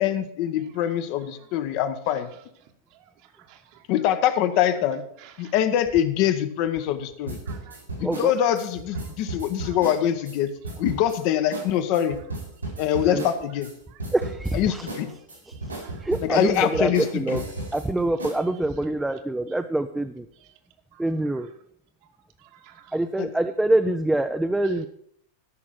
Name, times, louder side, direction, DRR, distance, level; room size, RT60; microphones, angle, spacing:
voice 1, 0.0-2.3 3.9-5.0 5.4-7.4 8.0-10.5 10.8-12.2 12.8-13.7 14.5-15.1 16.2-17.4 23.2-23.3, left 10 dB, 45° left, 9 dB, 1.0 m, -24 dB
voice 2, 3.5-3.8 5.2-5.5 7.5-7.8 9.6-9.8 15.8-16.1 20.9-21.0 22.4-23.0, right 11 dB, 45° right, 5 dB, 1.5 m, -51 dB
sound 1, 7.3-10.4 10.6-11.2 11.5-11.7 11.9-13.7 14.0-14.5 14.9-17.8 18.2-18.4, right 2 dB, 80° right, 4.4 m, -34 dB
voice 3, 8.0-8.3 13.1-13.2 14.1-14.9 15.5-15.6 16.0-17.4 17.7-20.3 21.0-21.5 22.9-24.9, right 1 dB, 5° right, 6 dB, 0.6 m, -25 dB
13.5 x 6.1 x 6.2 m, 0.69 s
figure-of-eight pair, 90°, 0 cm